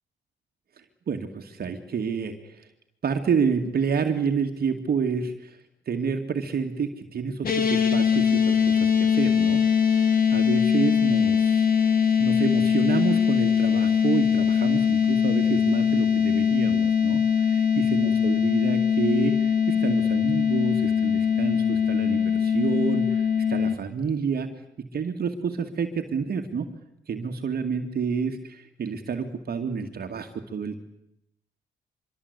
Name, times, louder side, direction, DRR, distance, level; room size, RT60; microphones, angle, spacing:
voice 1, 1.1-2.7 3.0-5.6 5.9-9.6 9.9-11.7 12.2-17.2 17.8-24.5 24.9-26.7 27.1-30.8, right 6 dB, 50° right, 5 dB, 2.3 m, -29 dB
sound 1, 7.4-23.7, left 7 dB, 45° left, 3.2 m, -22 dB
25.0 x 23.0 x 8.2 m, 0.80 s
cardioid pair, 90°, 20 cm